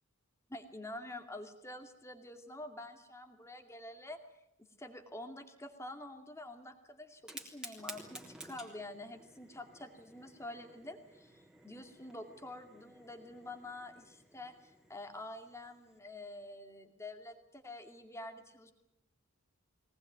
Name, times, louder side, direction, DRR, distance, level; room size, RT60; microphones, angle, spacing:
voice 1, 0.5-4.2 4.6-18.7, left 1 dB, 10° left, 6 dB, 2.4 m, -47 dB
Fire, 7.1-16.0, right 1 dB, 5° right, 3.5 m, -54 dB
22.5 x 19.0 x 9.4 m, 0.80 s
head